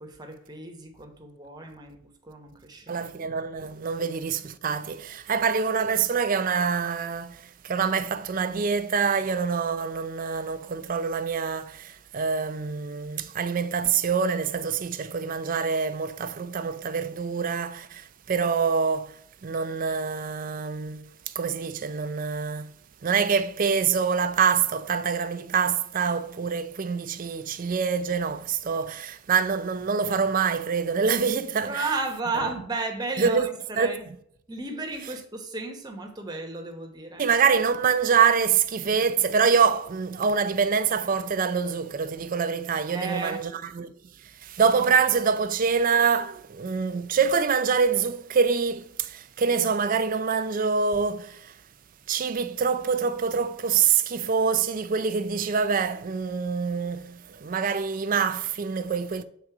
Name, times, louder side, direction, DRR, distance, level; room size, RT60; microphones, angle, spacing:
voice 1, 0.0-3.1 3.9-4.0 31.6-34.0 34.5-37.2 42.9-43.4, right 3 dB, 20° right, 0.9 m, -34 dB
voice 2, 2.9-22.7 23.0-31.8 33.2-33.5 33.8-33.9 37.2-43.9 44.2-51.6 52.1-59.2, right 6 dB, 40° right, 0.4 m, -25 dB
7.2 x 3.8 x 4.8 m
head